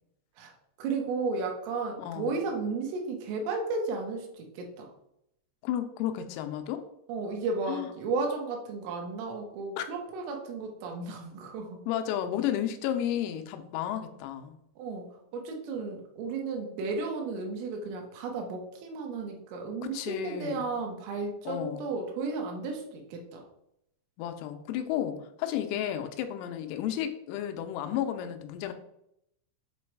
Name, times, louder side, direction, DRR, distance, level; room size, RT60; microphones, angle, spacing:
voice 1, 0.8-4.2 4.6-4.9 7.1-11.7 14.8-15.1 15.3-22.8 23.1-23.4, right 4 dB, 80° right, 1 dB, 3.7 m, -33 dB
voice 2, 2.0-2.4 5.6-6.8 7.7-7.9 9.8-9.9 11.9-14.6 19.8-20.7 21.5-21.9 24.2-28.7, left 10 dB, 90° left, 7 dB, 3.4 m, -32 dB
8.3 x 3.1 x 4.6 m, 0.78 s
omnidirectional pair, 5.8 m